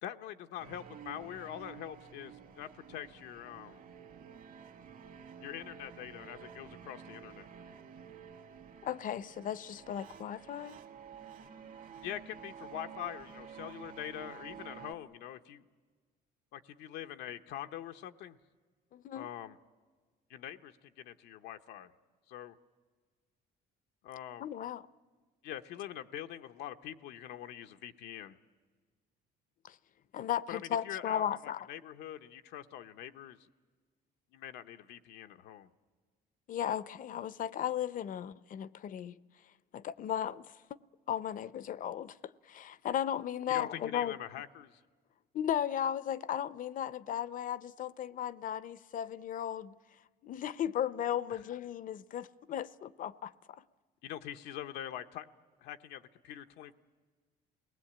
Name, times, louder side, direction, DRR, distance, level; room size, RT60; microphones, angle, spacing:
voice 1, 0.0-3.8 5.4-7.5 12.0-15.6 16.5-18.4 19.1-19.6 20.3-21.9 22.3-22.5 24.0-24.5 25.4-28.4 30.5-33.4 34.3-35.7 43.5-44.8 51.3-51.4 54.0-55.3 55.6-56.7, left 11 dB, 85° left, 0.8 m, -44 dB
sound 1, 0.6-14.9, right 7 dB, 55° right, 1.7 m, -51 dB
voice 2, 8.8-10.8 18.9-19.3 24.4-24.8 29.6-29.8 30.1-31.6 36.5-39.2 39.7-40.4 41.1-44.1 45.3-49.7 50.2-53.3, left 10 dB, 55° left, 0.6 m, -35 dB
28.5 x 19.5 x 8.7 m
cardioid pair, 110°, 17 cm